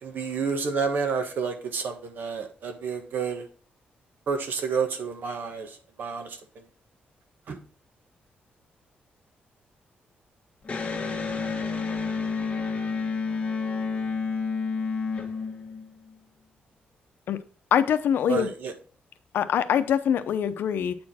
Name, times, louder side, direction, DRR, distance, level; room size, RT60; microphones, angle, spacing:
voice 1, 0.0-3.5 4.3-6.6 7.5-7.6 18.3-18.7, right 5 dB, 65° right, 1.4 m, -30 dB
Electric guitar, 10.6-16.1, left 4 dB, 35° left, 1.5 m, -30 dB
voice 2, 17.7-18.5 19.3-21.0, left 9 dB, 80° left, 0.7 m, -23 dB
8.6 x 4.4 x 4.2 m
cardioid pair, 125°, 4 cm